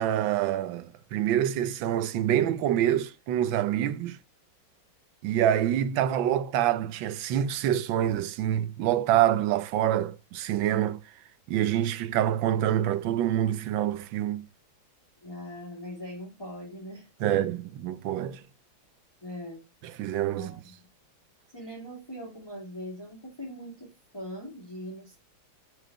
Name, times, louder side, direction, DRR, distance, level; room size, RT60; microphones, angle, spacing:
voice 1, 0.0-4.2 5.2-11.0 11.5-14.4 17.2-18.4 20.0-20.5, right 11 dB, 75° right, 1.4 m, -26 dB
voice 2, 15.2-17.4 19.2-19.6 20.3-20.7 21.5-25.2, equal, 10° left, 2.4 m, -41 dB
6.0 x 5.1 x 4.4 m
omnidirectional pair, 2.2 m